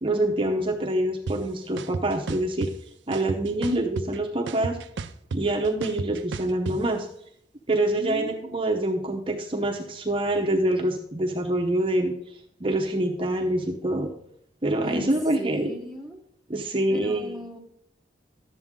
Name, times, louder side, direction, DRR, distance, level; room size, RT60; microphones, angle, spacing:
voice 1, 0.0-2.7 3.1-4.8 5.3-7.1 7.7-12.1 12.6-14.1 14.6-15.7 16.5-17.4, right 1 dB, 30° right, 2 dB, 0.8 m, -25 dB
sound 1, 1.3-1.4 1.8-2.7 3.1-4.2 4.5-6.8, right 4 dB, 80° right, 0.5 m, -32 dB
voice 2, 7.9-8.9 14.8-16.2 16.9-17.6, equal, ahead, 2 dB, 1.1 m, -38 dB
12.0 x 7.9 x 3.7 m, 0.71 s
head